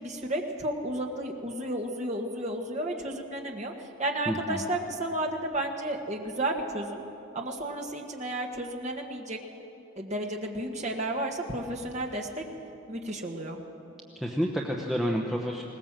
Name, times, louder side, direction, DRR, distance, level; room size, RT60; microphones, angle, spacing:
voice 1, 0.0-3.7 4.0-7.0 7.3-9.4 10.0-12.4 12.9-13.6, right 1 dB, 30° right, 2 dB, 1.6 m, -32 dB
voice 2, 4.3-4.6 14.2-15.6, equal, ahead, -2 dB, 0.9 m, -29 dB
20.5 x 19.0 x 7.5 m, 3.0 s
head